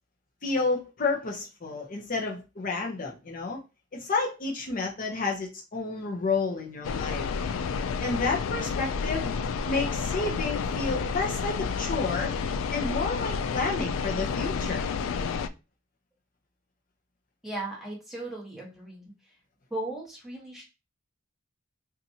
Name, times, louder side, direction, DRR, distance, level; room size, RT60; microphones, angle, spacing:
voice 1, 0.4-3.6 3.9-7.2 8.0-9.3 9.7-12.3 12.7-14.8, left 3 dB, 45° left, 0.7 m, -30 dB
sound 1, 6.8-15.5, left 5 dB, 70° left, 0.3 m, -30 dB
voice 2, 17.4-19.1 19.7-20.6, right 2 dB, ahead, 1.2 m, -37 dB
4.0 x 2.5 x 2.7 m
head